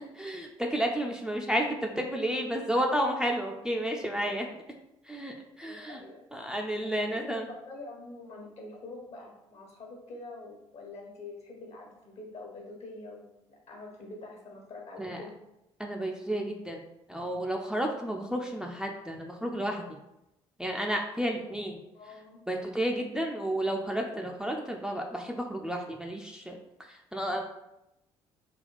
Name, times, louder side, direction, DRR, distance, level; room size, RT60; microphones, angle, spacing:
voice 1, 0.1-4.6 5.0-6.0 6.3-7.5 15.0-15.2 15.8-16.8 17.1-20.0 20.6-21.8 22.5-27.4, equal, 5° right, 1 dB, 0.5 m, -32 dB
voice 2, 5.6-6.2 7.0-15.3 21.9-22.4, left 2 dB, 50° left, 0 dB, 1.2 m, -45 dB
3.5 x 2.3 x 3.9 m, 0.89 s
figure-of-eight pair, 50°, 14 cm